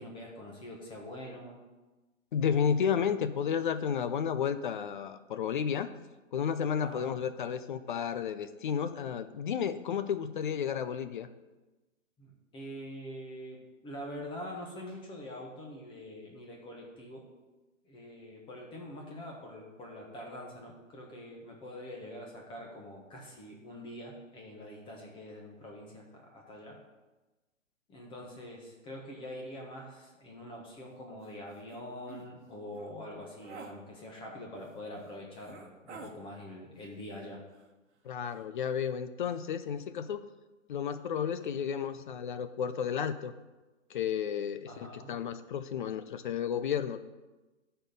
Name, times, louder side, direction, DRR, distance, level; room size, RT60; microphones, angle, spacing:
voice 1, 0.0-1.6 6.8-7.2 12.2-17.3 17.8-26.8 27.9-37.4 44.7-45.1, left 1 dB, 15° left, -1 dB, 1.3 m, -45 dB
voice 2, 2.3-5.9 6.3-11.3 38.0-40.2 40.7-43.3 43.9-47.0, left 7 dB, 40° left, 12 dB, 0.5 m, -32 dB
sound 1, 31.2-31.3 31.7-32.3 32.7-32.9 33.4-33.7 34.7-34.8 35.4-36.1 37.5-38.0 38.2-38.4, right 5 dB, 55° right, 1.2 m, -49 dB
12.5 x 4.5 x 5.2 m, 1.2 s
hypercardioid pair, 135°, 40 cm